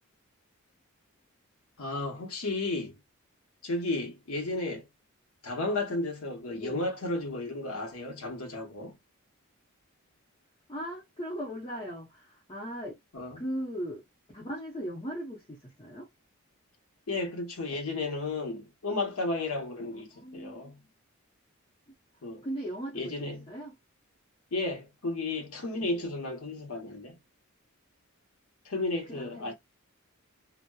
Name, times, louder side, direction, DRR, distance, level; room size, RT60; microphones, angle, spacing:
voice 1, 1.8-3.0 3.6-4.9 5.4-9.0 13.1-13.4 17.1-20.8 22.2-22.4 22.9-23.5 24.5-27.2 28.6-29.5, left 2 dB, 80° left, 0.9 m, -33 dB
voice 2, 10.7-13.0 13.3-14.0 14.3-16.1 19.9-20.9 22.4-23.2 23.5-23.7 29.1-29.5, equal, 25° left, 0.7 m, -38 dB
2.8 x 2.0 x 2.2 m
head